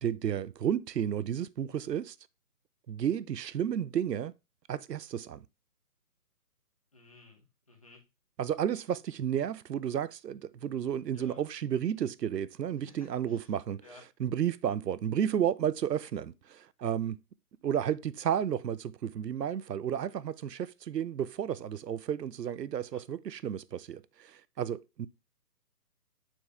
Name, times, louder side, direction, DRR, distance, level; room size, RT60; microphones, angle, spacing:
voice 1, 0.0-2.2 2.9-4.3 4.7-5.4 8.4-13.8 14.2-17.2 17.6-25.1, right 9 dB, 90° right, 0.7 m, -32 dB
voice 2, 6.9-8.0 11.1-11.4 12.8-13.5 13.8-14.0 22.9-23.0, left 3 dB, 20° left, 1.0 m, -56 dB
7.2 x 4.6 x 3.2 m
hypercardioid pair, 175°, 47 cm